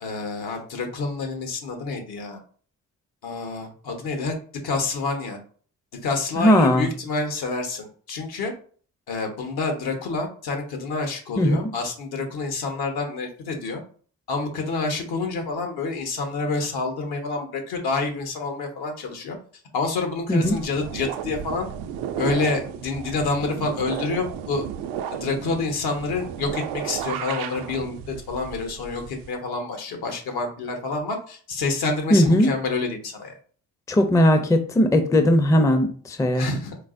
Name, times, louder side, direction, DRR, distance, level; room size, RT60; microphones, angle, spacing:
voice 1, 0.0-2.4 3.2-4.3 4.6-5.4 6.0-8.5 9.1-13.8 14.3-19.4 19.7-21.7 22.1-24.7 25.1-33.3 36.3-36.8, left 3 dB, 70° left, 1.1 m, -28 dB
voice 2, 6.4-6.9 11.4-11.7 20.3-20.6 32.1-32.5 33.9-36.5, equal, 10° left, 0.4 m, -18 dB
sound 1, 20.4-29.3, right 9 dB, 80° right, 0.5 m, -33 dB
4.5 x 2.0 x 2.5 m
supercardioid pair, 55°, 39 cm